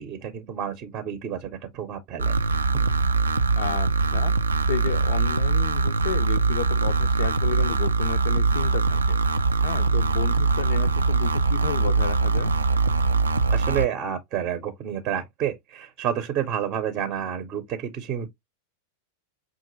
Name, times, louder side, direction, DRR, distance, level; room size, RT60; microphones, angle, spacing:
voice 1, 0.0-2.9 13.5-18.3, right 9 dB, 35° right, 0.6 m, -30 dB
sound 1, 2.2-13.9, right 4 dB, 75° right, 0.3 m, -22 dB
voice 2, 3.6-4.3 4.7-9.2 9.6-12.5, left 9 dB, 55° left, 0.4 m, -32 dB
5.8 x 2.4 x 2.9 m
figure-of-eight pair, 90°, 0 cm